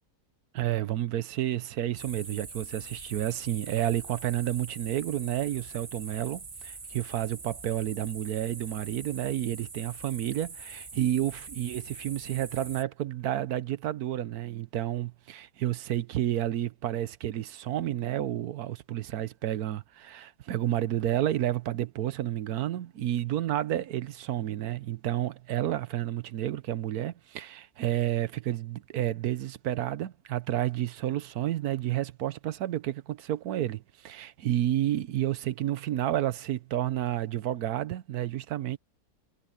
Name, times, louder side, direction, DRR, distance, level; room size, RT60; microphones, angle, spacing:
voice 1, 0.5-38.8, right 12 dB, 80° right, 1.3 m, -30 dB
sound 1, 2.0-12.8, right 4 dB, 25° right, 0.9 m, -44 dB
omnidirectional pair, 1.6 m